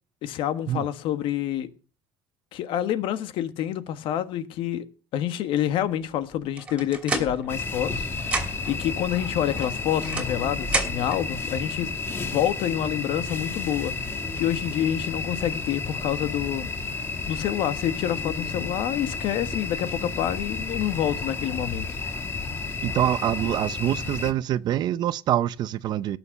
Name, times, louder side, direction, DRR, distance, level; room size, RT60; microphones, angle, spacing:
voice 1, 0.2-1.7 2.5-4.8 5.1-11.9 12.2-16.7 17.3-22.0, left 11 dB, 55° left, 1.5 m, -28 dB
sound 1, 6.6-7.9 8.2-8.8 9.6-11.2, right 2 dB, 10° right, 2.9 m, -30 dB
sound 2, 7.5-24.3, left 4 dB, 20° left, 2.0 m, -32 dB
voice 2, 22.8-26.2, right 12 dB, 45° right, 0.7 m, -25 dB
18.5 x 6.5 x 6.5 m
cardioid pair, 155°, 10 cm